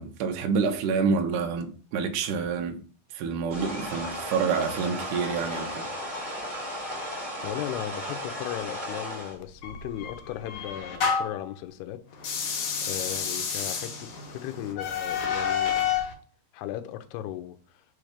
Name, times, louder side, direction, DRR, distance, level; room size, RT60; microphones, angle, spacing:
voice 1, 0.0-2.8 3.1-5.9, right 5 dB, 80° right, 1.9 m, -28 dB
sound 1, 3.5-9.4, equal, 20° right, 1.7 m, -35 dB
voice 2, 7.4-12.0 12.8-15.8 16.5-17.8, left 13 dB, 85° left, 2.6 m, -36 dB
sound 2, 9.6-11.5 12.2-16.1, left 7 dB, 60° left, 2.3 m, -29 dB
6.3 x 3.2 x 5.0 m
omnidirectional pair, 4.8 m